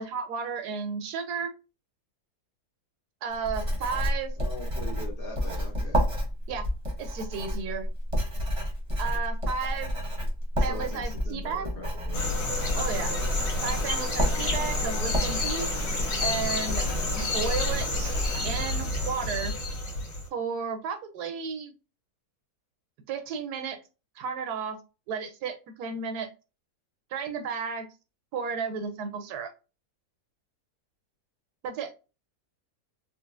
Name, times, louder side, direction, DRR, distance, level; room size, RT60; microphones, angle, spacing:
voice 1, 0.0-1.5 3.2-4.3 6.5-6.7 7.0-7.9 9.0-10.0 10.6-11.7 12.7-13.1 13.6-15.7 16.2-16.8 17.1-19.5 20.3-21.7 23.1-23.8 24.2-24.8 25.1-26.3 27.1-27.9 28.3-29.5 31.6-31.9, right 6 dB, 85° right, 7 dB, 1.1 m, -33 dB
Writing, 3.3-18.4, equal, 30° right, 0.7 m, -30 dB
voice 2, 4.4-6.0 10.6-12.3, left 1 dB, 50° left, -2 dB, 0.7 m, -41 dB
sound 1, 12.1-20.3, left 2 dB, 80° left, 1.6 m, -30 dB
3.9 x 2.0 x 2.4 m, 0.31 s
omnidirectional pair, 1.7 m